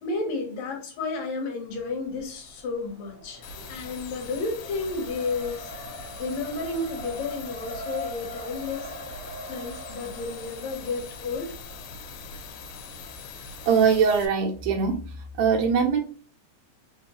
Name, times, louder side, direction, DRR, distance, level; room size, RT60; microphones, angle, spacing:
voice 1, 0.0-5.7 6.2-8.9 9.5-11.6, left 3 dB, 65° left, 2 dB, 2.0 m, -32 dB
Race car auto racing, 1.7-14.3, equal, 25° left, 1.7 m, -43 dB
sound 1, 3.4-14.3, left 4 dB, 80° left, 2.3 m, -42 dB
voice 2, 13.7-15.0 15.4-16.0, right 6 dB, 75° right, 2 dB, 1.8 m, -21 dB
4.5 x 3.5 x 2.9 m, 0.41 s
omnidirectional pair, 3.6 m